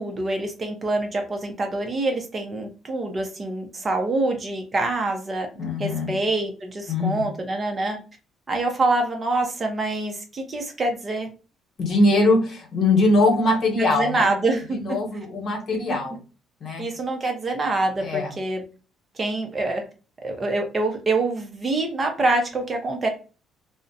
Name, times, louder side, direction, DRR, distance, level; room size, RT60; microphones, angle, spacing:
voice 1, 0.0-5.5 5.8-8.0 8.5-11.3 13.8-15.0 15.9-16.0 16.8-18.6 19.2-19.8 20.2-23.1, right 2 dB, 25° right, 3 dB, 0.5 m, -25 dB
voice 2, 5.6-6.1 6.9-7.2 11.8-14.3 14.7-16.2 16.6-16.8 18.0-18.3, left 2 dB, 50° left, 1 dB, 1.0 m, -21 dB
2.4 x 2.1 x 2.5 m, 0.35 s
cardioid pair, 130°, 0 cm